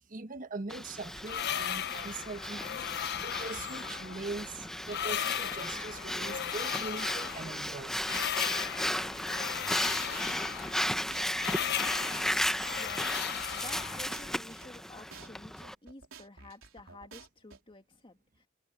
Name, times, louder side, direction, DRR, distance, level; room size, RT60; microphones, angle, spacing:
voice 1, 0.1-2.9 3.2-8.0 9.5-9.7, right 3 dB, 40° right, 1.2 m, -42 dB
Breathing, 0.7-15.7, equal, ahead, 0.8 m, -35 dB
sound 1, 1.0-14.4, left 10 dB, 55° left, 0.6 m, -37 dB
sound 2, 9.6-10.7 11.1-11.3 11.6-14.7 15.1-15.3 15.6-17.6, right 4 dB, 85° right, 3.6 m, -52 dB
voice 2, 10.4-10.7 12.8-18.5, left 2 dB, 25° left, 2.3 m, -52 dB
head